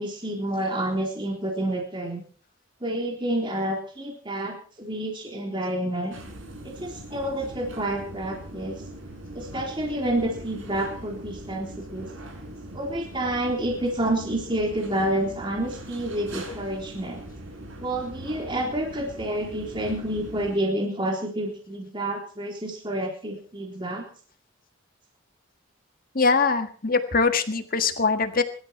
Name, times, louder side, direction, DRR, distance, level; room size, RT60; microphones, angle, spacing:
voice 1, 0.0-2.2 2.8-6.1 6.6-8.8 9.3-12.1 12.7-17.2 17.8-24.1, right 1 dB, 25° right, 0 dB, 3.6 m, -29 dB
sound 1, 6.1-20.6, right 1 dB, 75° right, 5.3 m, -41 dB
voice 2, 26.2-28.4, left 4 dB, 45° left, 8 dB, 1.7 m, -22 dB
22.5 x 12.5 x 4.6 m, 0.42 s
head